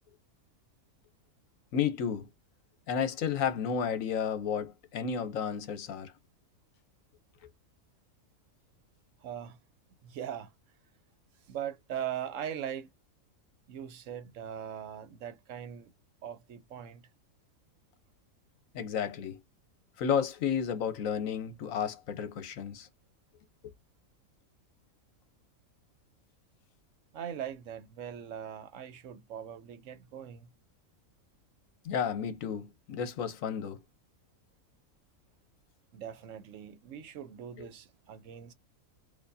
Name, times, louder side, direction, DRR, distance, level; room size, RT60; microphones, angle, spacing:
voice 1, 1.7-2.3 2.9-6.1 18.7-19.4 20.0-22.9 23.6-23.7 31.8-33.8 37.6-37.7, left 7 dB, 70° left, 1.1 m, -32 dB
voice 2, 9.2-9.6 10.0-10.5 11.5-12.9 13.7-15.9 16.2-17.0 27.1-30.5 35.9-38.5, right 9 dB, 70° right, 0.9 m, -40 dB
4.4 x 2.6 x 2.6 m
omnidirectional pair, 1.5 m